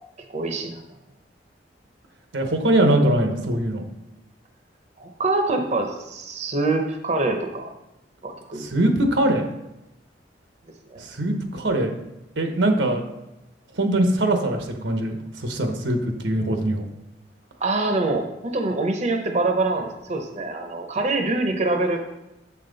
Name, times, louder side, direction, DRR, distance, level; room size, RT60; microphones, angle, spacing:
voice 1, 0.3-0.8 5.0-7.7 8.2-8.7 10.9-11.0 17.6-22.0, right 2 dB, 40° right, 4 dB, 0.7 m, -25 dB
voice 2, 2.3-3.8 8.6-9.5 11.0-11.9 12.4-13.0 13.7-16.8, right 1 dB, 85° right, 5 dB, 1.0 m, -22 dB
7.2 x 5.6 x 4.0 m, 0.92 s
head